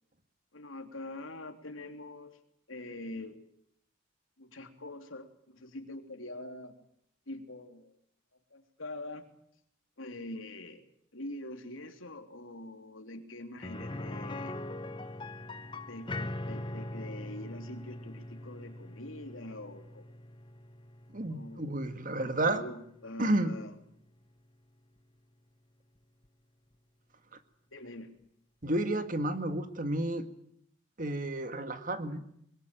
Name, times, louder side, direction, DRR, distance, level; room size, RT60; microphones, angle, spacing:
voice 1, 0.5-2.4 2.7-3.4 4.4-6.7 7.3-7.9 8.5-9.3 10.0-10.8 11.1-14.6 15.9-20.1 21.3-21.9 22.2-23.7 27.7-28.1, left 1 dB, 85° left, 5 dB, 3.3 m, -44 dB
sound 1, 13.6-23.4 23.7-23.8 26.2-26.3, left 1 dB, 25° left, 1.0 m, -42 dB
voice 2, 21.1-22.6 23.2-23.5 28.6-30.3 31.0-32.3, right 1 dB, 45° right, 9 dB, 1.9 m, -31 dB
22.5 x 22.5 x 9.1 m, 0.71 s
head